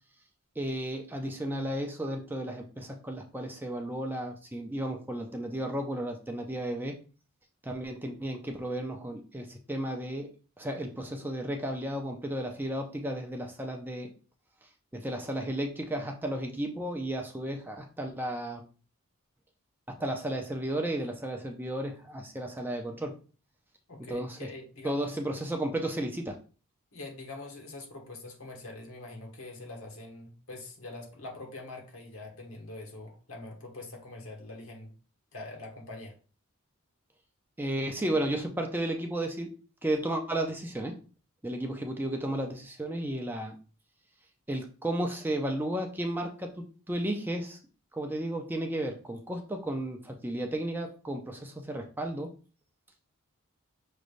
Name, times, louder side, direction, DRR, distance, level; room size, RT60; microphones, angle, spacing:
voice 1, 0.6-7.0 7.6-14.1 14.9-18.6 19.9-23.1 24.0-24.5 24.8-26.4 37.6-39.5 39.8-41.0 41.4-43.6 44.5-47.6 47.9-52.3, right 1 dB, 10° right, 0.5 m, -33 dB
voice 2, 23.9-25.2 26.9-34.9 35.3-36.2, left 2 dB, 70° left, 1.3 m, -44 dB
6.2 x 3.3 x 2.5 m
head